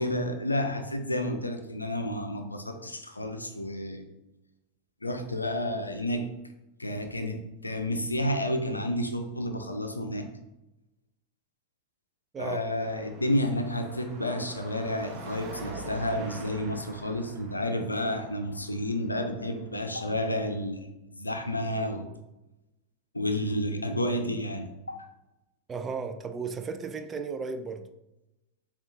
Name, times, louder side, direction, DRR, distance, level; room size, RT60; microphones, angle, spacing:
voice 1, 0.0-4.1 5.0-6.3 6.8-10.3 12.4-20.9 21.2-22.1 23.1-25.1, left 1 dB, 80° left, 0.5 m, -30 dB
Car passing by / Traffic noise roadway noise / Engine, 12.8-20.1, right 3 dB, 40° right, 0.8 m, -45 dB
voice 2, 25.7-27.9, right 5 dB, 20° right, 0.4 m, -34 dB
7.1 x 2.4 x 2.7 m
figure-of-eight pair, 90°, 0 cm